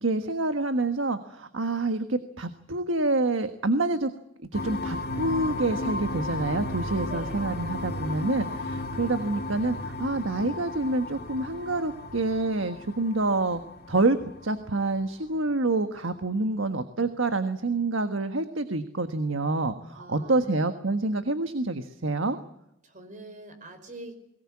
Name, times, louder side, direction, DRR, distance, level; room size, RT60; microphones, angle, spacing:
voice 1, 0.0-4.1 4.5-13.6 13.9-22.4, right 2 dB, 85° right, 9 dB, 1.4 m, -27 dB
sound 1, 4.5-15.0, left 2 dB, 55° left, 1.9 m, -35 dB
voice 2, 7.1-7.6 19.9-20.6 22.8-24.2, right 1 dB, 40° right, 8 dB, 5.0 m, -45 dB
22.5 x 19.0 x 8.6 m, 0.79 s
head